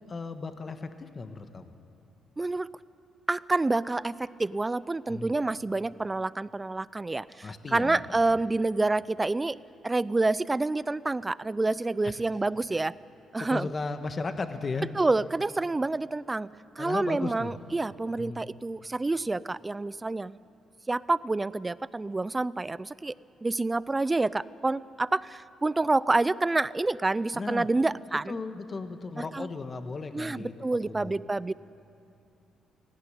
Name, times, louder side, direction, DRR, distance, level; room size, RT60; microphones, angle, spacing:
voice 1, 0.1-1.7 5.1-5.3 7.4-8.0 12.0-12.1 13.4-14.9 16.8-17.6 18.2-18.4 27.3-27.7 28.3-30.5 30.8-31.2, left 4 dB, 35° left, 8 dB, 1.3 m, -35 dB
voice 2, 2.4-2.7 3.3-9.6 9.8-12.9 13.3-13.7 15.0-16.5 16.8-20.4 20.9-23.1 23.4-28.4 29.2-29.5 30.1-31.5, right 2 dB, 20° right, 19 dB, 0.4 m, -28 dB
17.0 x 16.5 x 9.9 m, 2.6 s
cardioid pair, 90°, 0 cm